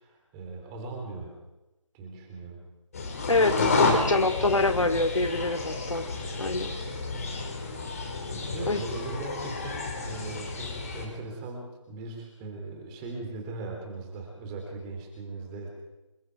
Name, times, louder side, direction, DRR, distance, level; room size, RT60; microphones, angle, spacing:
voice 1, 0.0-1.4 1.9-2.6 8.5-15.7, right 3 dB, 10° right, 2 dB, 3.4 m, -39 dB
sound 1, 2.9-11.1, left 3 dB, 30° left, 5.0 m, -30 dB
voice 2, 3.3-6.1 6.4-6.7 8.7-8.8, left 2 dB, 75° left, 7 dB, 2.4 m, -25 dB
27.0 x 24.0 x 4.8 m, 1.0 s
figure-of-eight pair, 170°, 16 cm